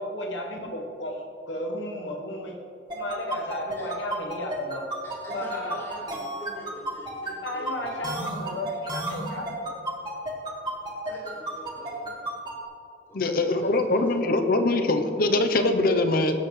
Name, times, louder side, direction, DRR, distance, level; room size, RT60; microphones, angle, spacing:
voice 1, 0.0-2.6 2.9-4.9 5.3-5.8 7.4-9.7, left 1 dB, 85° left, 1 dB, 1.3 m, -34 dB
sound 1, 2.9-12.5, right 1 dB, 25° right, 1.8 m, -32 dB
voice 2, 5.0-8.0 11.0-12.2 13.1-14.0, equal, 25° left, -11 dB, 2.1 m, -43 dB
voice 3, 13.1-16.4, left 2 dB, 55° left, 6 dB, 0.8 m, -23 dB
17.0 x 8.0 x 3.2 m, 2.5 s
head